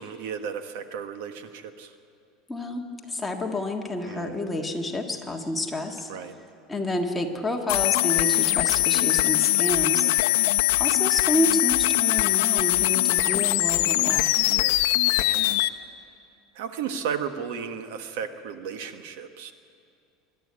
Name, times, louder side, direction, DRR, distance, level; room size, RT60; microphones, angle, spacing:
voice 1, 0.0-1.9 4.1-4.4 6.1-6.3 10.2-10.4 14.5-15.7 16.5-19.5, right 7 dB, 75° right, 8 dB, 1.3 m, -35 dB
voice 2, 2.5-6.1 6.7-10.1 10.7-14.5, left 1 dB, 10° left, 1 dB, 1.6 m, -29 dB
sound 1, 7.7-15.7, left 17 dB, 75° left, 0.6 m, -22 dB
24.0 x 12.0 x 9.8 m, 2.4 s
supercardioid pair, 155°, 0 cm